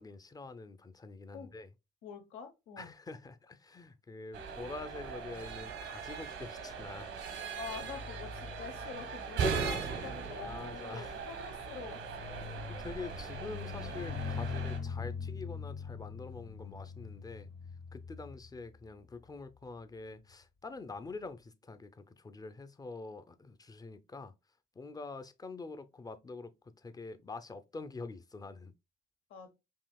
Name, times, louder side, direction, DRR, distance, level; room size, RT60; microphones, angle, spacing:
voice 1, 0.0-1.7 2.8-7.1 9.9-11.2 12.7-17.5 17.9-24.3 24.7-28.7, left 3 dB, 20° left, 0.5 m, -46 dB
voice 2, 2.0-2.9 7.5-12.6 29.3-29.5, left 6 dB, 85° left, 1.0 m, -46 dB
sound 1, 4.3-14.8, right 5 dB, 80° right, 1.2 m, -39 dB
sound 2, 7.7-19.3 20.0-20.3, left 6 dB, 55° left, 1.8 m, -43 dB
5.5 x 2.8 x 2.3 m
cardioid pair, 90°, 20 cm